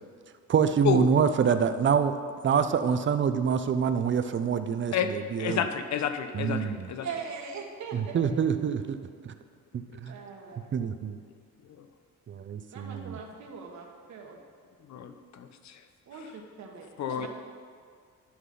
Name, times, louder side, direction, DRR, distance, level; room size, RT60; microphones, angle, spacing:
voice 1, 0.5-5.7 6.3-6.9 7.9-9.0 9.2-9.3 9.7-10.1 10.7-11.2 12.3-13.2, right 7 dB, 40° right, 10 dB, 0.6 m, -26 dB
voice 2, 5.4-7.1 11.8-11.9 14.9-15.8 17.0-17.3, left 8 dB, 65° left, 9 dB, 0.8 m, -30 dB
voice 3, 7.0-8.2 10.1-10.9 12.7-14.4 16.1-17.3, right 5 dB, 65° right, 1 dB, 1.7 m, -41 dB
11.5 x 6.0 x 5.6 m, 2.1 s
cardioid pair, 90°, 30 cm